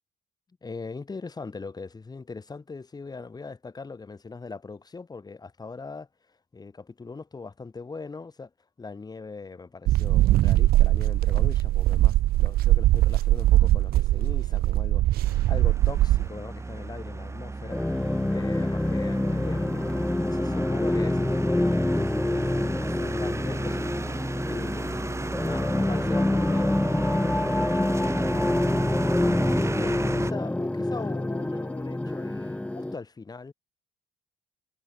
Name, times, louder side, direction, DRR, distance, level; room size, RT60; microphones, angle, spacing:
voice 1, 0.6-8.5 8.8-33.5, left 4 dB, 25° left, 6.4 m, -41 dB
sound 1, 9.9-16.3, right 15 dB, 65° right, 0.5 m, -21 dB
sound 2, 15.2-30.3, right 3 dB, 15° right, 1.7 m, -35 dB
sound 3, 17.7-33.0, left 1 dB, 5° left, 1.1 m, -26 dB
cardioid pair, 110°, 17 cm